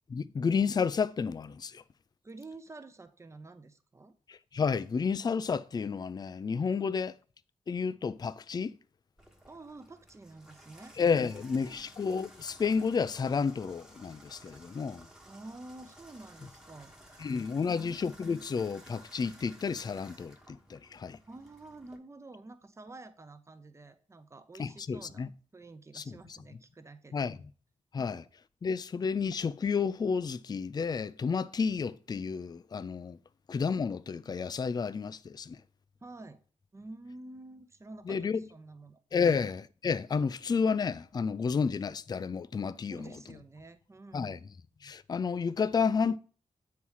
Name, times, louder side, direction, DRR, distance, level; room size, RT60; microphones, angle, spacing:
voice 1, 0.1-1.8 4.3-7.1 7.7-8.7 11.0-15.1 17.2-21.2 24.6-25.3 25.9-26.4 27.1-27.4 27.9-28.2 28.6-33.2 33.5-35.6 38.1-38.4 39.1-43.1 44.1-44.4 44.8-46.2, left 5 dB, 30° left, 0.3 m, -31 dB
voice 2, 2.2-4.1 6.7-6.9 9.5-11.9 15.3-18.0 21.3-27.3 28.0-28.2 36.0-36.4 36.7-39.4 42.9-44.4, right 2 dB, 20° right, 0.7 m, -49 dB
Water tap faucet / Bathtub (filling or washing), 9.2-22.0, equal, 5° right, 1.1 m, -55 dB
8.3 x 4.7 x 5.6 m
wide cardioid pair, 165°, 13 cm